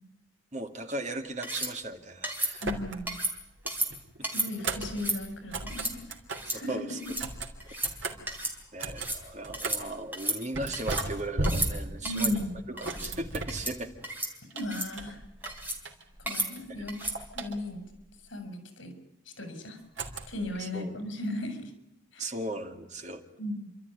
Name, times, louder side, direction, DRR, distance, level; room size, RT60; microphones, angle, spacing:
voice 1, 0.5-2.6 3.9-4.0 6.5-7.0 8.7-12.4 12.7-13.9 16.7-16.9 20.6-21.0 22.2-23.2, right 2 dB, 35° right, 6 dB, 2.1 m, -37 dB
sound 1, 1.4-1.7 2.2-2.5 3.1-3.3 3.7-3.9 4.2-4.5 4.8-5.2 5.7-5.9 6.3-6.6 6.9-7.2 7.6-7.9 8.3-8.5 8.8-9.2 9.5-9.8 10.1-11.1 11.4-11.7 12.0-12.3 12.8-13.1 13.5-13.7 14.0-14.3 14.6-14.9 15.4-15.8 16.3-16.5 16.9-17.2, right 1 dB, 10° right, 3.9 m, -33 dB
sound 2, 2.5-3.3 3.6-6.6 7.0-10.0 10.5-14.1 14.5-16.3 16.5-18.0 19.9-20.6, right 2 dB, 75° right, 3.3 m, -37 dB
voice 2, 2.6-3.2 4.3-6.0 6.5-7.1 7.7-7.9 12.0-12.5 14.5-15.2 16.2-17.0 17.3-17.9 18.3-18.9 19.4-19.8 20.3-21.7 22.1-22.3 23.4-23.7, left 1 dB, 70° left, 6 dB, 6.2 m, -36 dB
30.0 x 13.0 x 9.7 m, 0.85 s
head